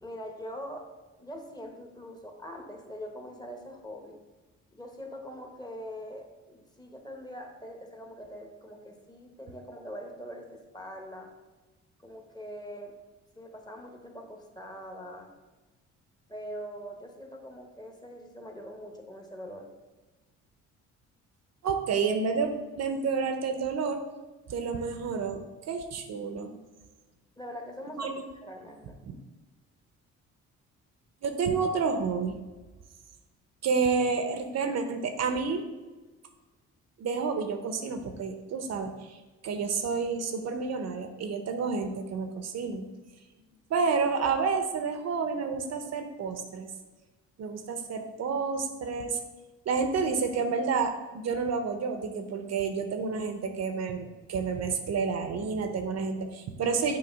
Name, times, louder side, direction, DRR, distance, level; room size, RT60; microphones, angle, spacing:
voice 1, 0.0-0.9 1.2-4.2 4.7-11.3 12.0-13.0 13.4-15.3 16.3-19.7 27.4-28.1 28.4-29.0, equal, 15° left, 3 dB, 1.0 m, -43 dB
voice 2, 21.6-24.0 24.5-25.4 25.7-26.5 28.0-28.1 29.1-29.2 31.2-32.4 33.6-35.6 37.0-39.2 39.4-42.9 43.7-46.7 47.4-49.2 49.7-57.0, right 5 dB, 60° right, 7 dB, 0.7 m, -29 dB
6.8 x 2.9 x 5.1 m, 1.2 s
cardioid pair, 90°, 30 cm